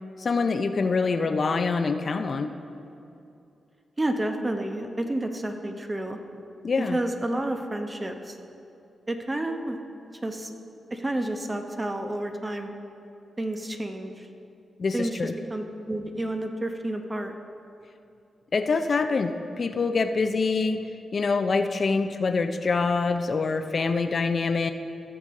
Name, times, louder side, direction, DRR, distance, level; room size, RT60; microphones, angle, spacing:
voice 1, 0.2-2.5 6.6-7.0 14.8-15.3 18.5-20.8 21.1-24.7, left 4 dB, 55° left, 8 dB, 0.5 m, -25 dB
voice 2, 4.0-6.2 6.8-8.4 9.1-9.8 10.2-10.5 10.9-12.7 13.4-14.3 14.9-17.3, right 1 dB, 25° right, 5 dB, 0.9 m, -30 dB
15.5 x 6.9 x 3.7 m, 2.7 s
cardioid pair, 65°, 0 cm